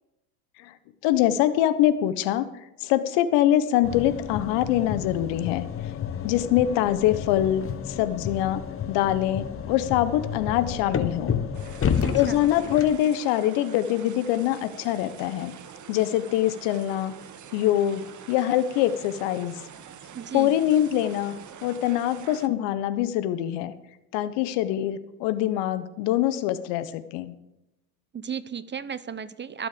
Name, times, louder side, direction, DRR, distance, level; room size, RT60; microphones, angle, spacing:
voice 1, 1.0-2.5 2.8-5.6 6.2-8.6 8.9-11.4 12.1-15.5 15.9-17.1 17.5-18.0 18.3-19.5 20.3-21.4 21.6-23.7 24.1-27.3, left 12 dB, 65° left, 13 dB, 1.3 m, -24 dB
sound 1, 3.8-13.0, left 7 dB, 30° left, 1.2 m, -31 dB
sound 2, 11.5-22.5, right 8 dB, 40° right, 1.6 m, -45 dB
voice 2, 12.0-12.5 20.1-20.6 28.1-29.7, right 7 dB, 25° right, 16 dB, 0.8 m, -34 dB
21.5 x 7.8 x 5.2 m, 0.92 s
hypercardioid pair, 80°, 47 cm